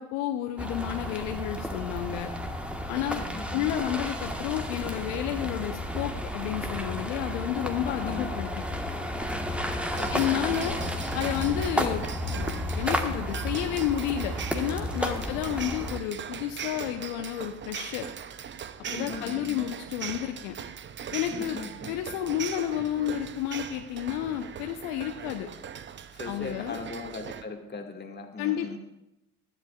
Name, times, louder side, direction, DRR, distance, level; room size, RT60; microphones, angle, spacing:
voice 1, 0.0-2.3 2.9-3.2 3.5-8.6 10.1-10.8 11.1-18.0 18.9-20.6 21.1-21.6 21.9-25.5 26.2-26.8 28.4-28.8, left 11 dB, 65° left, 5 dB, 0.9 m, -31 dB
sound 1, 0.6-16.0, equal, 5° right, 1.4 m, -32 dB
voice 2, 3.1-3.7 7.8-8.4 9.9-10.6 15.1-15.5 18.9-19.7 21.3-22.0 26.1-28.8, left 3 dB, 25° left, 3 dB, 2.0 m, -39 dB
sound 2, 9.9-27.4, right 8 dB, 25° right, 0.7 m, -40 dB
19.5 x 13.0 x 2.4 m, 0.88 s
figure-of-eight pair, 60°, 42 cm